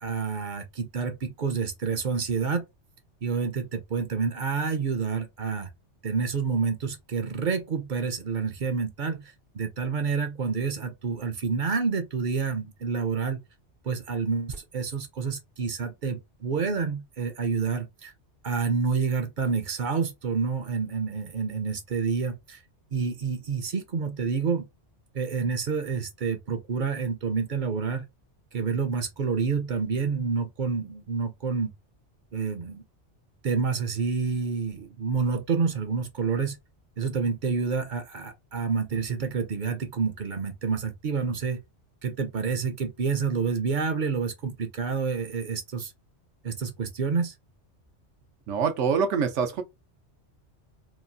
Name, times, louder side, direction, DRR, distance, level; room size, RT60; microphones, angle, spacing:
voice 1, 0.0-2.6 3.2-5.7 6.0-13.4 13.8-18.1 18.4-22.6 22.9-24.7 25.1-28.0 28.5-31.7 32.3-32.8 33.4-36.6 37.0-41.6 42.0-45.9 46.4-47.3, right 5 dB, 55° right, 0.6 m, -28 dB
voice 2, 48.5-49.6, right 6 dB, 90° right, 0.9 m, -25 dB
2.9 x 2.3 x 2.5 m
omnidirectional pair, 1.2 m